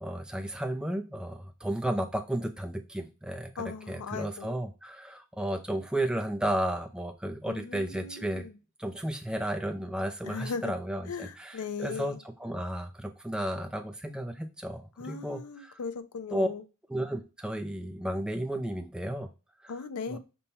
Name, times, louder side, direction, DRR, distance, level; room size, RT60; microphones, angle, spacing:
voice 1, 0.0-3.5 3.9-8.4 8.8-15.8 16.3-16.5 16.9-19.3 19.6-19.7 20.1-20.2, right 1 dB, 5° right, 0.3 m, -33 dB
voice 2, 3.6-4.6 7.5-8.5 10.2-10.7 11.1-12.2 15.0-16.6 19.7-20.2, left 5 dB, 85° left, 0.5 m, -38 dB
5.3 x 2.2 x 4.1 m
head